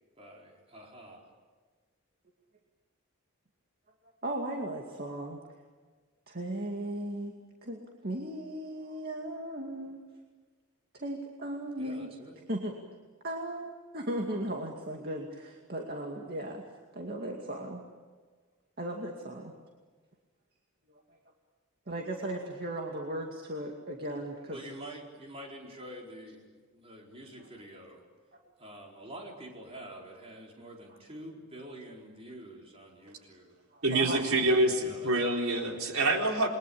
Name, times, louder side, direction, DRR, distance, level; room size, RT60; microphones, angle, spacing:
voice 1, 0.2-1.2 11.8-12.4 24.5-26.4 26.7-28.0 28.6-33.5 34.8-35.1, right 1 dB, 30° right, 4.6 m, -47 dB
voice 2, 4.2-5.4 6.3-7.3 7.6-10.0 10.9-12.1 12.5-12.8 13.2-16.6 16.9-17.8 18.8-19.5 21.9-24.7 27.4-27.5 28.3-28.4 33.1-33.2 33.7-34.3, right 1 dB, 45° right, 2.4 m, -37 dB
voice 3, 33.8-36.5, right 2 dB, 90° right, 3.9 m, -26 dB
28.5 x 22.5 x 8.7 m
head